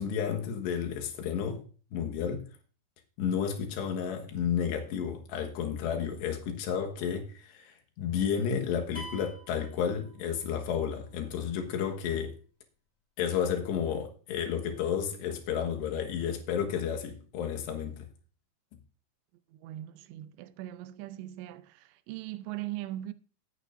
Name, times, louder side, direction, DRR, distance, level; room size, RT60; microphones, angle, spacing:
voice 1, 0.0-1.6 1.9-2.5 3.2-12.3 13.2-18.1, left 8 dB, 80° left, 3.5 m, -32 dB
sound 1, 8.9-10.6, right 1 dB, 10° left, 3.1 m, -46 dB
voice 2, 19.5-23.1, right 14 dB, 85° right, 2.9 m, -40 dB
18.0 x 9.0 x 2.6 m
omnidirectional pair, 5.0 m